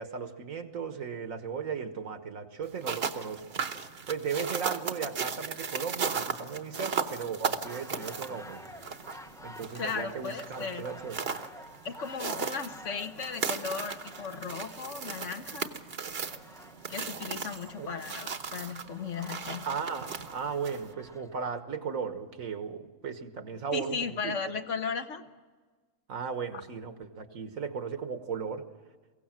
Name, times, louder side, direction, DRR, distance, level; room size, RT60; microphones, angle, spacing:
voice 1, 0.0-3.4 4.1-8.6 9.4-11.2 17.8-18.0 19.6-24.0 24.2-24.3 26.1-28.6, right 6 dB, 80° right, 9 dB, 1.7 m, -36 dB
sound 1, 2.6-20.9, right 6 dB, 50° right, 1.1 m, -37 dB
sound 2, 7.6-21.6, left 1 dB, 5° left, 0.4 m, -51 dB
voice 2, 9.7-10.8 11.8-15.8 16.9-19.6 23.7-25.2, left 5 dB, 65° left, 8 dB, 1.4 m, -36 dB
22.5 x 16.5 x 7.5 m, 1.4 s
omnidirectional pair, 1.4 m